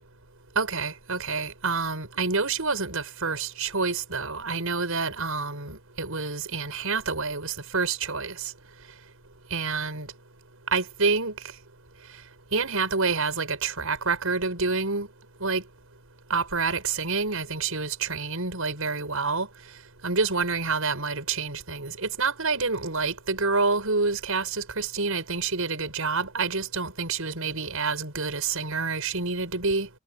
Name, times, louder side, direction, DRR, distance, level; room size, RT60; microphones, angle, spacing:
voice 1, 0.6-8.5 9.5-10.1 10.7-11.3 12.5-15.1 15.4-15.6 16.3-19.5 20.0-29.9, right 4 dB, 80° right, 5.7 m, -28 dB
head